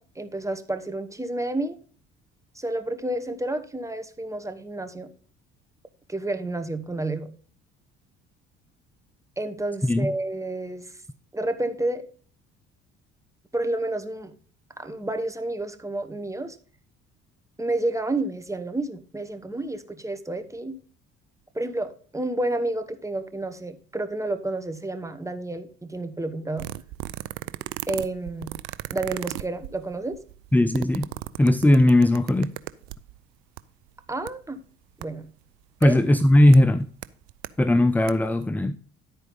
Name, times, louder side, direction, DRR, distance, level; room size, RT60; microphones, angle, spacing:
voice 1, 0.0-1.8 2.5-5.1 6.1-7.3 9.4-10.9 11.3-12.1 13.5-14.3 14.8-16.6 17.6-20.8 21.5-26.7 27.9-28.6 28.9-30.2 34.1-34.6 35.0-35.3 35.8-36.0, right 2 dB, 10° right, 8 dB, 1.2 m, -30 dB
sound 1, 26.6-33.2 33.6-33.7 33.9-34.3 35.0-35.1 35.8-35.9 36.5-36.6 37.0-37.5 37.9-38.1 38.4-38.5, right 18 dB, 85° right, 0.5 m, -35 dB
voice 2, 30.5-31.1 31.4-32.5 35.8-36.9 37.6-38.8, left 1 dB, 5° left, 15 dB, 0.4 m, -18 dB
11.0 x 4.5 x 5.3 m, 0.43 s
hypercardioid pair, 60°, 31 cm